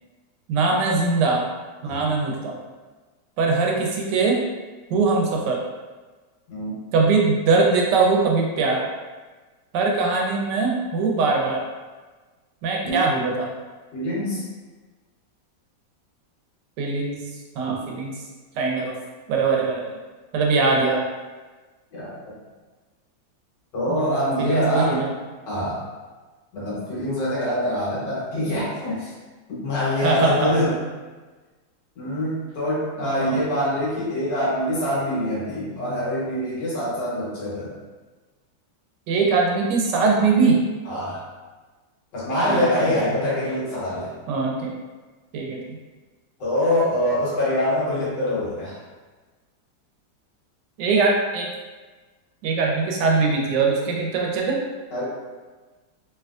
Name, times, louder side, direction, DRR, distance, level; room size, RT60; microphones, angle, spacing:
voice 1, 0.5-1.4 1.8-2.5 3.4-4.4 4.9-5.6 6.9-8.8 9.7-11.6 12.6-13.5 16.8-17.2 17.6-18.1 18.5-18.9 19.3-19.9 20.3-21.0 23.9-25.0 30.0-30.5 33.0-33.4 39.1-40.6 42.5-42.6 44.3-44.7 45.3-45.8 50.8-51.5 52.4-54.6, right 4 dB, 75° right, -1 dB, 1.2 m, -21 dB
voice 2, 6.5-6.8 12.8-13.0 13.9-14.4 21.9-22.1 23.7-25.0 25.5-25.8 26.5-29.1 29.5-30.8 31.9-37.7 40.8-41.2 42.1-44.1 46.4-48.8 54.9-55.1, left 1 dB, 75° left, -7 dB, 1.7 m, -24 dB
3.3 x 2.9 x 2.3 m, 1.3 s
omnidirectional pair, 1.9 m